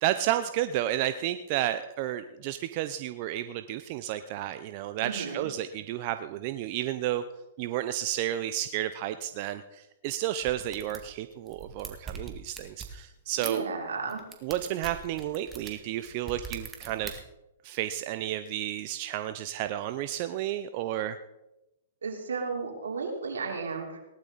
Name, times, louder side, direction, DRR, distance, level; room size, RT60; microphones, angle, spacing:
voice 1, 0.0-7.2 7.6-13.6 14.4-17.2 17.6-21.2, right 12 dB, 45° right, 10 dB, 0.6 m, -32 dB
voice 2, 5.0-5.5 13.4-14.2 22.0-24.0, right 4 dB, 85° right, 1 dB, 3.4 m, -33 dB
sound 1, 10.4-11.1 11.5-13.0 13.4-13.5 14.1-17.1, right 6 dB, 20° right, 2.1 m, -41 dB
18.5 x 12.0 x 4.1 m, 0.97 s
hypercardioid pair, 125°, 0 cm